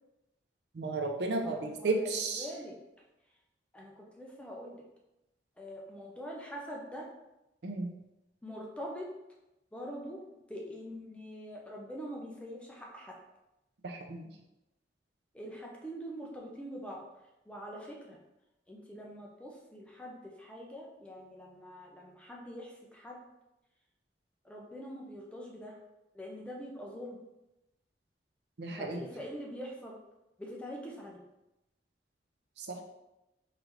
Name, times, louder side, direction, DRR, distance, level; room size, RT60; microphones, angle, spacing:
voice 1, 0.7-2.5 7.6-7.9 13.8-14.3 28.6-29.0 32.6-32.8, right 3 dB, 65° right, 3 dB, 0.5 m, -33 dB
voice 2, 1.4-2.8 3.7-4.8 5.6-7.1 8.4-9.1 9.7-10.2 10.5-13.1 15.3-17.0 17.5-18.2 18.7-23.2 24.4-25.8 26.1-27.2 28.8-30.0 30.4-31.2, equal, 5° left, -2 dB, 0.5 m, -44 dB
3.7 x 3.2 x 3.1 m, 0.93 s
head